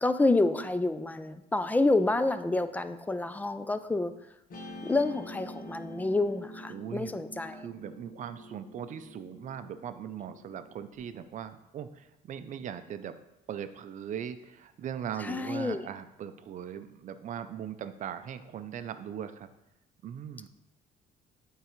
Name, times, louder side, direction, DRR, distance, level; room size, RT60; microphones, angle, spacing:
voice 1, 0.0-4.1 4.8-7.7 15.2-15.8, left 2 dB, 10° left, 11 dB, 0.3 m, -28 dB
Guitar, 4.5-11.0, equal, 55° left, 1.2 m, -47 dB
voice 2, 6.7-7.2 7.5-13.2 13.5-19.5 20.0-20.5, right 9 dB, 50° right, 11 dB, 0.5 m, -39 dB
8.6 x 3.7 x 3.1 m, 0.90 s
cardioid pair, 110°, 17 cm